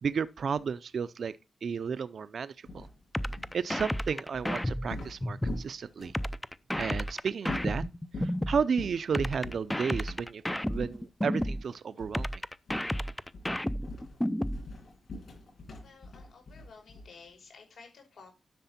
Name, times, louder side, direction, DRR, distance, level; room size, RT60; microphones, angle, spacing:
voice 1, 0.0-1.3 1.6-2.9 3.5-6.1 6.8-7.8 8.2-10.4 10.7-12.3, right 6 dB, 60° right, 0.6 m, -32 dB
sound 1, 2.7-6.3 6.8-7.0 7.4-8.4 8.8-9.1 9.4-9.7 10.1-10.3 10.7-11.7 12.0-12.3 12.7-13.0 13.3-17.3, left 2 dB, 60° left, 7.1 m, -44 dB
sound 2, 3.1-5.6 6.1-8.6 9.1-11.6 12.1-14.6, equal, 5° left, 0.5 m, -32 dB
voice 2, 15.8-18.4, left 4 dB, 75° left, 5.4 m, -53 dB
11.5 x 6.8 x 4.3 m
wide cardioid pair, 150°, 0 cm